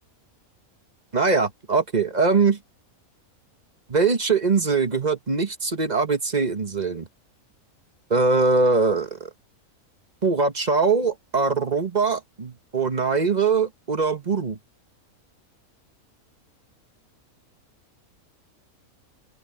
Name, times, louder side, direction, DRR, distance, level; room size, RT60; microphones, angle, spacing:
voice 1, 1.1-2.6 3.9-7.1 8.1-9.3 10.2-14.6, right 4 dB, 30° right, 1.4 m, -22 dB
open air
omnidirectional pair, 1.5 m